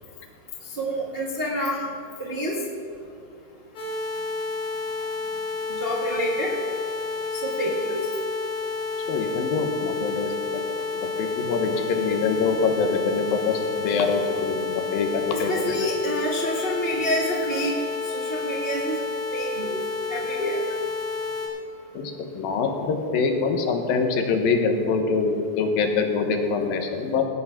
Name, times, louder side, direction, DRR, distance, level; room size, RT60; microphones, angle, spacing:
voice 1, 0.8-1.8 2.2-2.6 5.7-6.5 7.4-8.0 15.3-17.7 18.1-19.0 19.3-19.8 20.1-20.6, equal, 90° right, -4 dB, 0.5 m, -27 dB
sound 1, 3.7-21.5, left 4 dB, 50° left, 4.7 m, -30 dB
voice 2, 9.1-10.6 10.9-15.8 21.9-27.2, left 4 dB, 70° left, 4 dB, 2.8 m, -25 dB
18.0 x 8.6 x 5.9 m, 2.5 s
omnidirectional pair, 4.5 m